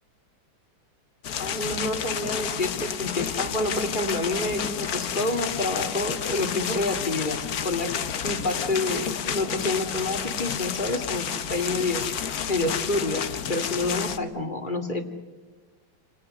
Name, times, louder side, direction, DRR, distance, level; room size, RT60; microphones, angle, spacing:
sound 1, 1.2-14.2, left 8 dB, 55° left, 1.4 m, -30 dB
voice 1, 1.4-8.0 8.2-15.1, left 2 dB, 25° left, 5 dB, 2.4 m, -28 dB
28.5 x 28.0 x 6.6 m, 1.3 s
omnidirectional pair, 2.1 m